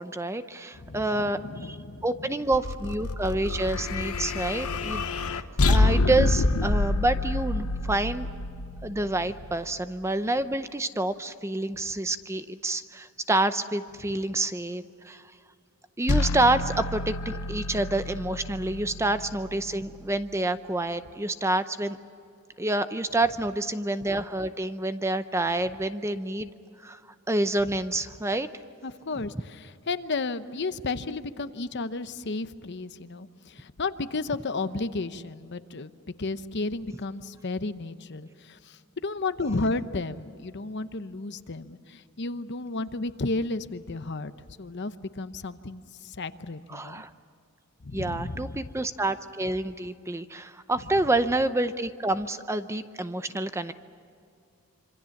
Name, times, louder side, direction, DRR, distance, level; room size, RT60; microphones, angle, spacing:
voice 1, 0.0-1.8 2.0-5.0 5.3-5.4 5.7-8.3 8.8-15.2 16.0-22.0 22.6-26.5 26.8-27.0 27.3-28.5 46.7-47.1 47.9-53.7, right 2 dB, 10° right, 11 dB, 0.6 m, -28 dB
voice 2, 0.9-2.0 28.8-35.9 36.2-44.3 44.6-47.0 47.8-48.6, left 3 dB, 50° left, 12 dB, 0.8 m, -33 dB
sound 1, 2.5-9.8 16.1-20.2, left 2 dB, 80° left, 1.0 m, -28 dB
26.5 x 25.0 x 7.2 m, 2.5 s
head